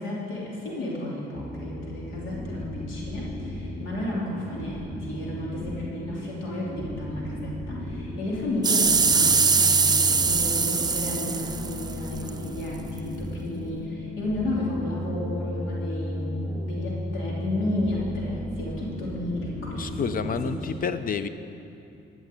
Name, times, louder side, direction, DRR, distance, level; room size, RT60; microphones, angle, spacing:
voice 1, 0.0-20.5, left 1 dB, 90° left, -5 dB, 3.0 m, -32 dB
sound 1, 1.3-20.6, equal, 5° left, 1.7 m, -35 dB
sound 2, 8.6-12.3 13.0-13.1, right 5 dB, 20° right, 0.5 m, -22 dB
voice 2, 19.8-21.3, left 6 dB, 45° left, 11 dB, 0.7 m, -29 dB
14.5 x 6.3 x 8.4 m, 2.8 s
cardioid pair, 90°, 20 cm